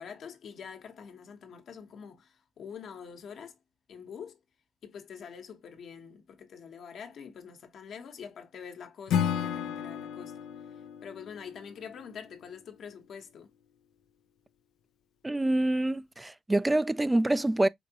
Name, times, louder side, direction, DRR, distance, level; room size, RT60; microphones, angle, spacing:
voice 1, 0.0-3.6 3.9-4.4 4.8-10.3 11.0-13.5, left 7 dB, 65° left, 1.2 m, -45 dB
Acoustic guitar / Strum, 9.1-12.3, left 8 dB, 85° left, 0.5 m, -33 dB
voice 2, 15.2-17.7, right 1 dB, 15° right, 0.3 m, -26 dB
5.0 x 3.4 x 2.9 m
cardioid pair, 90°, 0 cm